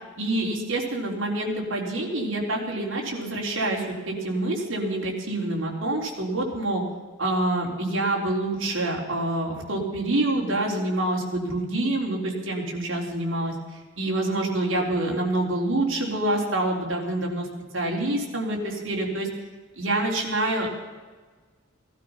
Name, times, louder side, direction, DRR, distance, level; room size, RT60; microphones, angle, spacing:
voice 1, 0.2-6.8 7.2-13.5 14.0-17.5 17.7-19.3 19.8-20.7, right 1 dB, 75° right, -1 dB, 3.7 m, -26 dB
18.0 x 12.5 x 5.8 m, 1.4 s
head